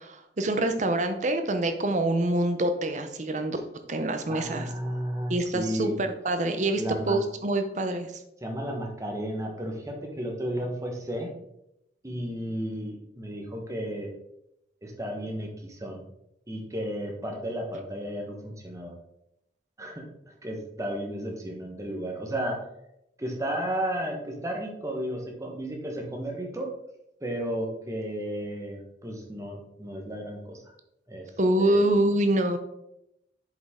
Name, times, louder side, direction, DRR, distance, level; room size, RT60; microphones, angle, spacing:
voice 1, 0.0-3.6 3.9-4.7 5.3-5.9 6.2-8.1 31.4-32.6, right 1 dB, 40° right, 8 dB, 0.7 m, -25 dB
voice 2, 4.3-5.9 6.8-7.2 8.4-11.3 12.0-14.1 14.8-16.1 16.5-18.9 19.8-20.1 20.4-22.6 23.2-26.7 27.2-30.7 31.1-31.3 31.6-31.9, equal, 15° right, 1 dB, 1.2 m, -33 dB
7.6 x 5.3 x 3.7 m, 0.83 s
head